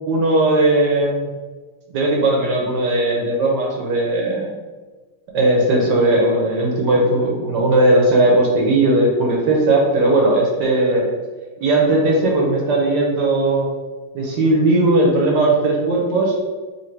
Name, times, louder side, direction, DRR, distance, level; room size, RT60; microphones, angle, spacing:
voice 1, 0.1-1.3 1.9-4.5 5.3-11.0 11.6-13.7 14.1-16.3, right 2 dB, 65° right, -2 dB, 1.3 m, -17 dB
3.3 x 2.7 x 4.4 m, 1.3 s
omnidirectional pair, 2.3 m